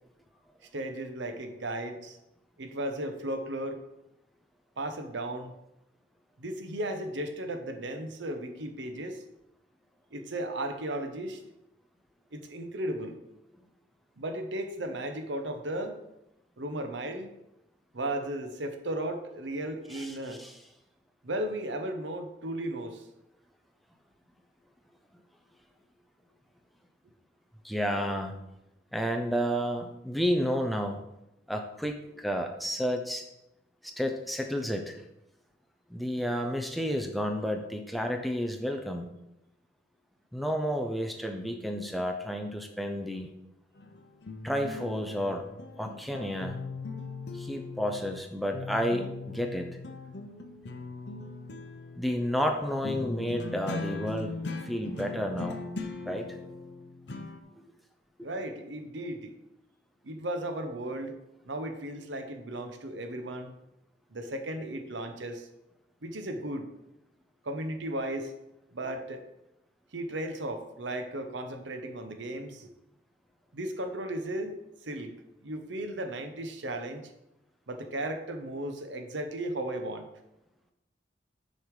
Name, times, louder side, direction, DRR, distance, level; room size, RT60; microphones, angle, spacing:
voice 1, 0.7-2.2 2.6-3.8 4.8-5.5 6.4-9.2 10.1-11.4 12.3-13.2 14.2-16.0 16.6-17.3 17.9-20.4 21.2-23.0 58.2-59.3 60.0-61.2 61.4-63.5 64.1-65.5 66.0-66.7 67.4-68.3 68.7-69.2 69.9-72.7 73.5-77.0 77.7-80.1, right 1 dB, 85° right, 7 dB, 0.9 m, -35 dB
voice 2, 19.9-20.5 27.6-28.4 28.9-31.0 31.5-33.2 33.8-35.0 35.9-39.1 40.3-43.3 44.4-45.5 45.8-46.6 47.3-49.8 51.9-54.4 54.6-55.6 56.1-56.3 57.5-57.6, equal, ahead, 3 dB, 0.6 m, -31 dB
sound 1, 43.8-48.3 48.5-57.4, left 3 dB, 65° left, 0.8 m, -40 dB
6.5 x 5.3 x 4.9 m, 0.88 s
head